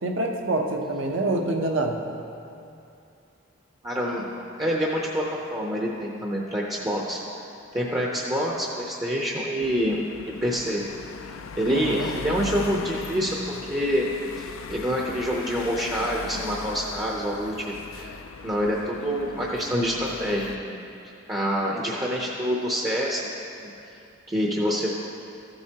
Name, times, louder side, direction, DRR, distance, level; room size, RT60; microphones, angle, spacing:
voice 1, 0.0-2.0 11.7-12.1, right 2 dB, 65° right, 2 dB, 0.8 m, -26 dB
voice 2, 3.8-4.2 4.6-7.2 7.7-10.0 10.4-10.8 11.2-13.4 13.7-14.1 14.4-20.8 21.3-23.3 23.6-23.7 24.3-24.9, equal, 20° right, -3 dB, 0.7 m, -27 dB
sound 1, 9.6-20.6, left 5 dB, 70° left, 0.4 m, -38 dB
14.0 x 7.9 x 2.9 m, 2.7 s
head